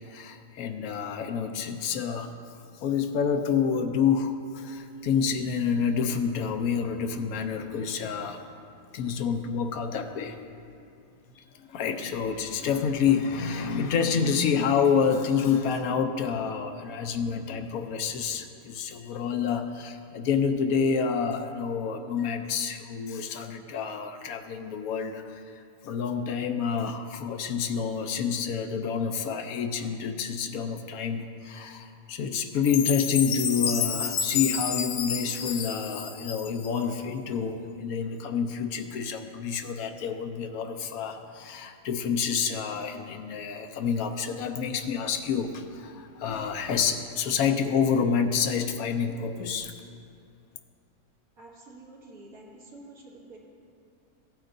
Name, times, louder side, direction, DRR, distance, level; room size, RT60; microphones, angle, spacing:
voice 1, 0.1-2.3 2.8-8.6 8.9-10.4 11.4-25.4 25.8-49.7, left 6 dB, 85° left, 6 dB, 1.1 m, -28 dB
Chime, 32.6-36.8, left 7 dB, 65° left, 0.9 m, -30 dB
voice 2, 51.4-53.4, right 2 dB, 85° right, -4 dB, 2.3 m, -48 dB
16.0 x 8.9 x 2.6 m, 2.5 s
omnidirectional pair, 1.5 m